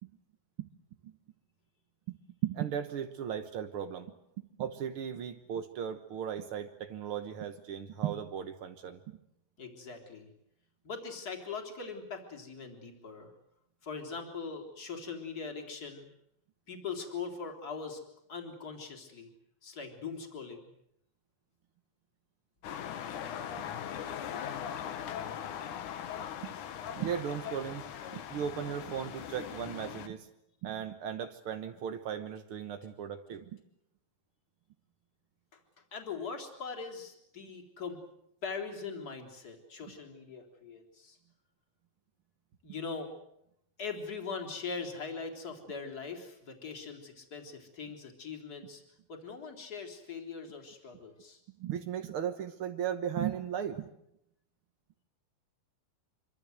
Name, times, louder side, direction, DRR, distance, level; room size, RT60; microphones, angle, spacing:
voice 1, 2.4-4.1 4.6-9.2 26.4-26.5 26.9-27.8 28.1-30.3 30.6-33.5 51.6-53.9, right 9 dB, 70° right, 7 dB, 1.3 m, -36 dB
voice 2, 9.6-10.3 10.8-13.3 13.8-16.1 16.7-18.0 18.3-19.3 19.6-20.7 35.5-35.6 35.9-38.0 38.4-41.2 42.6-43.1 43.8-48.8 49.1-51.4, left 5 dB, 25° left, 3 dB, 3.9 m, -41 dB
sound 1, 22.6-30.1, left 9 dB, 65° left, 2.6 m, -40 dB
26.5 x 24.5 x 7.9 m, 0.79 s
omnidirectional pair, 4.2 m